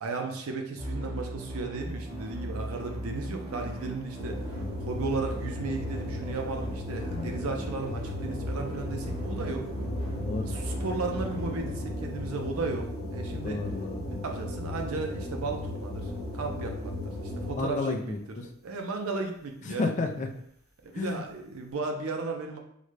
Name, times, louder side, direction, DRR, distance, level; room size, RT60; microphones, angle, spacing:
voice 1, 0.0-9.7 10.4-13.6 14.1-18.2 18.6-19.9 20.8-22.6, right 3 dB, 85° right, 3 dB, 0.5 m, -35 dB
sound 1, 0.8-12.7, right 1 dB, 25° right, 0.8 m, -38 dB
sound 2, 4.2-17.8, left 1 dB, 40° right, 1.2 m, -36 dB
voice 2, 13.4-14.1 17.4-18.5 19.7-20.3 20.9-21.2, left 3 dB, 35° left, 4 dB, 0.3 m, -32 dB
3.7 x 2.1 x 3.2 m, 0.71 s
head